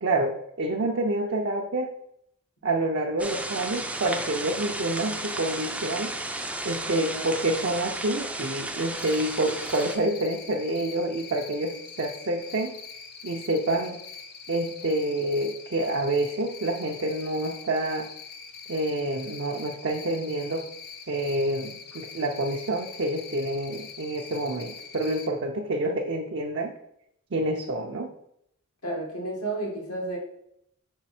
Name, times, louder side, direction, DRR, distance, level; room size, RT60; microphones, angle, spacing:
voice 1, 0.0-1.9 2.6-6.1 6.6-12.8 13.2-14.0 14.5-18.1 18.7-20.6 21.1-26.7 27.3-28.1, right 1 dB, 55° right, 1 dB, 0.6 m, -28 dB
sound 1, 3.2-10.0, right 2 dB, 5° right, 0.4 m, -33 dB
Cricket, 8.9-25.3, left 6 dB, 45° left, 0.7 m, -43 dB
voice 2, 28.8-30.2, right 2 dB, 85° left, -2 dB, 2.0 m, -31 dB
5.2 x 4.4 x 4.3 m, 0.74 s
head